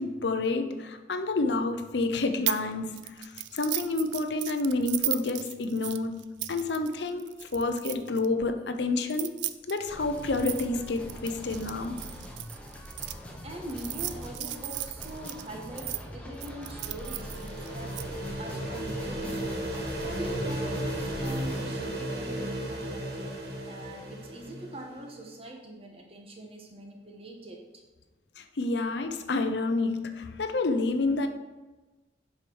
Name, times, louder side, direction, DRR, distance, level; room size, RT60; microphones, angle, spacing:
voice 1, 0.0-9.3 9.7-12.0 28.4-31.3, left 3 dB, 75° left, 7 dB, 0.7 m, -29 dB
sound 1, 2.5-2.7 3.0-8.3 9.0-13.1 13.7-16.0 16.4-18.0, right 16 dB, 85° right, 0.4 m, -35 dB
sound 2, 9.9-21.7, equal, 5° left, 0.9 m, -43 dB
voice 2, 13.4-18.0 18.4-23.4 23.6-27.8, right 1 dB, 35° right, 1 dB, 1.3 m, -43 dB
sound 3, 16.5-25.1, right 1 dB, 60° right, 1.3 m, -35 dB
7.7 x 5.7 x 4.6 m, 1.2 s
head